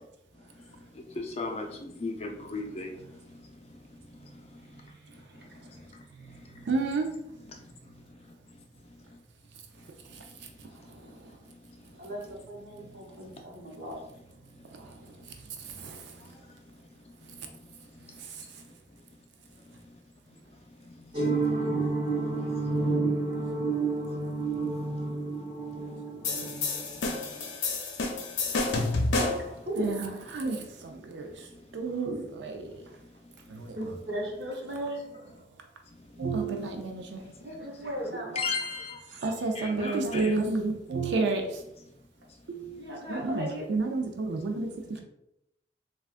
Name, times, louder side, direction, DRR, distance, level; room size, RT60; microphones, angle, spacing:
voice 1, 1.2-3.0 20.8-20.9 38.4-39.0 39.5-40.4, left 4 dB, 35° left, 2 dB, 0.4 m, -35 dB
voice 2, 4.7-5.4 5.8-5.9 6.1-6.5 12.0-14.0 28.9-30.6 33.7-35.0 37.4-38.4 42.7-43.7 44.9-45.0, equal, 65° right, -3 dB, 0.9 m, -37 dB
voice 3, 6.7-7.1 14.8-14.9 15.8-16.0 29.8-30.6 31.0-31.3 31.7-32.7 33.5-33.8 36.2-37.2 39.2-41.6 42.5-45.0, right 3 dB, 80° right, 4 dB, 0.4 m, -30 dB
sound 1, 21.1-27.4, right 3 dB, 25° right, 1.1 m, -30 dB
sound 2, 26.2-29.5, left 3 dB, 85° left, 0.6 m, -29 dB
3.5 x 2.3 x 2.4 m, 0.82 s
head